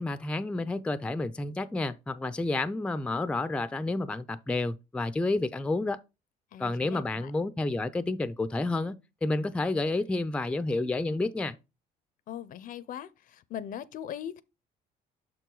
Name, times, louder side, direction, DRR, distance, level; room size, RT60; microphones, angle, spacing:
voice 1, 0.0-6.0 6.6-11.6, left 2 dB, 5° left, 0.4 m, -30 dB
voice 2, 6.5-7.3 12.3-14.4, left 10 dB, 55° left, 0.5 m, -40 dB
6.4 x 4.6 x 3.8 m
cardioid pair, 110°, 17 cm